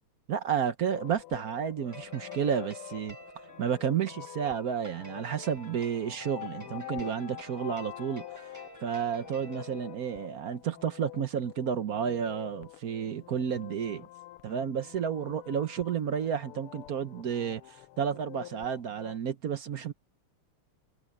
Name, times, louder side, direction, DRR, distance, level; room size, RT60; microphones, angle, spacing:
voice 1, 0.3-3.2 3.6-8.4 8.8-14.1 14.4-19.9, right 8 dB, 55° right, 1.1 m, -31 dB
sound 1, 0.9-19.2, left 16 dB, 90° left, 1.7 m, -46 dB
sound 2, 1.9-10.3, right 2 dB, 10° right, 1.2 m, -51 dB
omnidirectional pair, 2.4 m